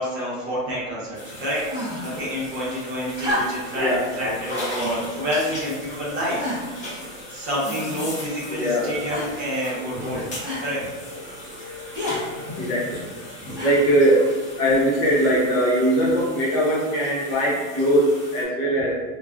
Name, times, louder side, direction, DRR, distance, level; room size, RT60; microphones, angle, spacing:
voice 1, 0.0-1.6 2.0-6.4 6.9-7.0 7.3-10.3 10.6-10.8 13.5-13.6, equal, 30° right, -7 dB, 0.8 m, -28 dB
sound 1, 1.1-18.4, left 1 dB, 20° left, 0.6 m, -38 dB
sound 2, 1.7-2.2 3.1-3.8 4.8-5.1 5.8-5.9 6.4-6.8 7.6-8.2 9.1-9.5 10.4-10.7 11.9-12.2 13.5-14.0 15.0-15.1, left 1 dB, 10° right, 0.7 m, -29 dB
voice 2, 3.5-4.4 8.5-8.9 9.8-10.3 10.6-10.8 11.1-11.2 11.6-19.0, equal, 45° left, -6 dB, 0.9 m, -22 dB
2.3 x 2.3 x 2.3 m, 1.3 s
supercardioid pair, 150°, 39 cm